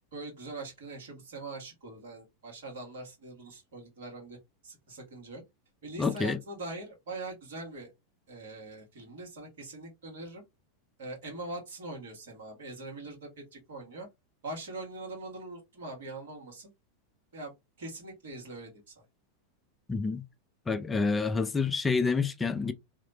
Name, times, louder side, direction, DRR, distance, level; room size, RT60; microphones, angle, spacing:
voice 1, 0.1-4.4 4.6-5.4 5.8-7.9 8.3-10.4 11.0-14.1 14.4-16.7 17.3-17.5 17.8-19.0, right 2 dB, 60° right, 1.4 m, -42 dB
voice 2, 6.0-6.4 19.9-20.2 20.7-22.7, left 4 dB, 15° left, 0.4 m, -28 dB
3.1 x 2.8 x 2.8 m
figure-of-eight pair, 90°, 0 cm